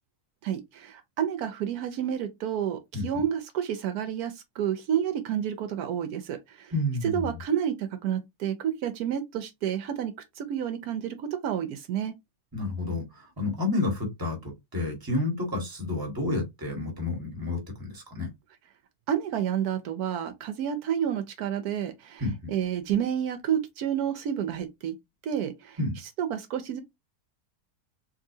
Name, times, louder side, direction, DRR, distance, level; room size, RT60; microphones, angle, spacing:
voice 1, 0.4-6.7 7.0-12.1 19.1-24.9 25.2-25.8 26.2-26.8, right 9 dB, 80° right, 1.1 m, -30 dB
voice 2, 6.7-7.4 12.5-13.0 13.4-18.3 22.2-22.5 25.8-25.9, left 2 dB, 15° right, 1.3 m, -30 dB
3.8 x 2.6 x 2.6 m
omnidirectional pair, 1.7 m